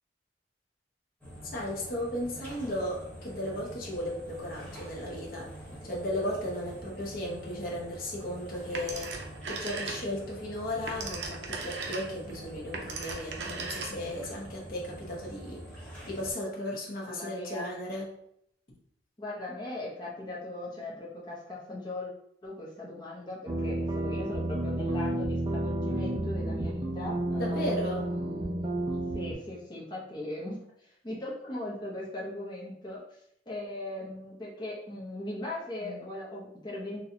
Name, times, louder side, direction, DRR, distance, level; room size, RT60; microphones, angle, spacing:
sound 1, 1.2-16.3, right 1 dB, 10° left, 1.2 m, -46 dB
voice 1, 1.5-5.5 5.8-9.1 9.5-15.6 16.0-18.1 27.3-28.0 35.8-36.0, left 1 dB, 50° left, -4 dB, 0.9 m, -35 dB
Telephone, 8.7-10.3 10.6-14.2, right 4 dB, 80° right, 0.6 m, -38 dB
voice 2, 17.0-17.7 19.2-22.1 22.4-28.8 29.1-33.0 33.5-37.0, left 1 dB, 25° left, -6 dB, 0.8 m, -39 dB
sound 2, 23.5-29.3, right 1 dB, 25° right, 0.5 m, -31 dB
4.1 x 2.3 x 2.8 m, 0.72 s
head